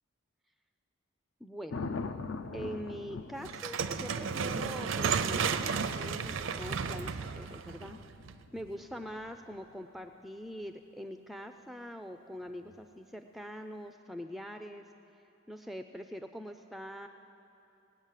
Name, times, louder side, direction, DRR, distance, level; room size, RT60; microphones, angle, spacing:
voice 1, 1.4-1.8 2.5-8.0 8.5-14.9 15.5-17.1, equal, ahead, 6 dB, 0.3 m, -43 dB
Thunder, 1.7-9.8 12.5-12.8, left 4 dB, 75° left, 0.5 m, -44 dB
sound 1, 3.4-8.6, right 6 dB, 75° right, 0.5 m, -33 dB
18.5 x 8.7 x 7.4 m, 2.9 s
head